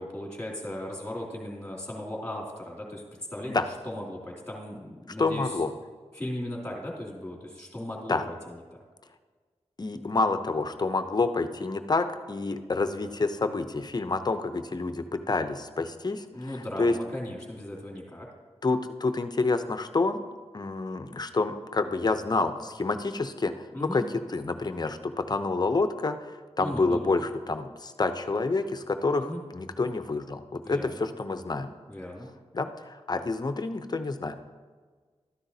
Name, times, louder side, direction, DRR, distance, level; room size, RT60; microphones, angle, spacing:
voice 1, 0.0-3.0 3.3-5.6 6.1-8.6 16.3-18.3 23.7-24.0 26.6-27.1 29.2-29.4 30.6-31.0 31.9-32.3, left 1 dB, 10° left, -2 dB, 2.6 m, -37 dB
voice 2, 5.2-5.7 8.1-8.2 9.8-16.9 18.6-20.2 20.5-24.0 24.3-31.7 32.5-34.3, left 3 dB, 35° left, 9 dB, 0.6 m, -28 dB
12.5 x 10.0 x 2.7 m, 1.5 s
wide cardioid pair, 80°, 11 cm